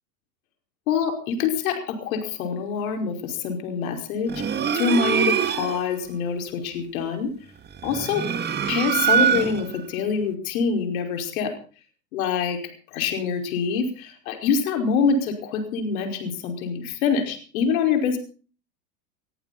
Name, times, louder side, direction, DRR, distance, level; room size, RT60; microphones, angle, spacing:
voice 1, 0.9-7.3 7.8-8.2 8.7-11.5 12.1-12.6 12.9-18.2, left 6 dB, 75° left, 5 dB, 5.2 m, -25 dB
sound 1, 4.3-5.9 7.7-9.8, right 8 dB, 25° right, 1.7 m, -23 dB
21.0 x 14.5 x 4.2 m, 0.39 s
hypercardioid pair, 110°, 43 cm